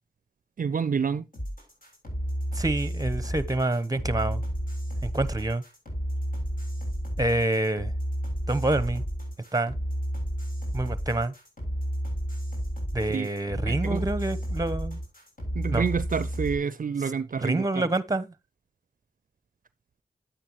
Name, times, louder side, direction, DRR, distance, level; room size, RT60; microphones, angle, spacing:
voice 1, 0.6-1.2 13.1-13.3 13.7-14.0 15.5-17.9, right 6 dB, 60° right, 0.4 m, -28 dB
sound 1, 1.3-16.6, equal, 60° left, 7.3 m, -31 dB
voice 2, 2.5-4.4 5.0-5.6 7.2-7.9 8.5-9.0 9.5-9.8 10.7-11.3 12.9-15.0 15.7-15.9 17.0-17.1 17.4-18.3, right 2 dB, 25° right, 0.9 m, -27 dB
10.5 x 8.7 x 3.0 m
cardioid pair, 45°, 16 cm